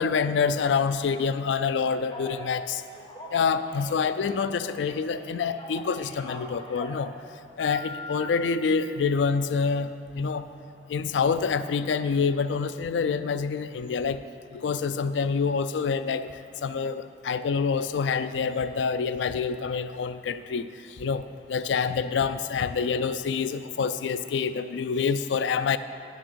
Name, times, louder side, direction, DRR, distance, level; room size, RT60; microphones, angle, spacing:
voice 1, 0.0-2.8 3.3-7.1 7.6-10.5 10.9-14.2 14.5-16.3 16.6-20.7 20.9-25.8, left 5 dB, 85° left, 12 dB, 0.4 m, -27 dB
Telephone, 2.1-2.4 2.9-4.6 4.9-7.0 7.6-8.3, left 1 dB, 30° left, 1.5 m, -41 dB
9.9 x 6.2 x 6.8 m, 2.5 s
head